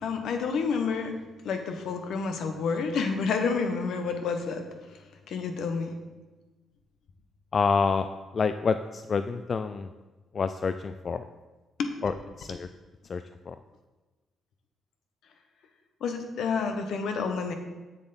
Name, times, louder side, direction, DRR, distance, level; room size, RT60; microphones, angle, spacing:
voice 1, 0.0-5.0 5.3-5.9 11.8-11.9 16.0-17.5, left 5 dB, 70° left, 6 dB, 0.9 m, -29 dB
voice 2, 7.5-8.1 8.3-9.9 10.3-11.2 12.0-12.7 13.0-13.6, left 5 dB, 45° left, 9 dB, 0.3 m, -28 dB
7.0 x 6.9 x 4.0 m, 1.2 s
cardioid pair, 90°, 0 cm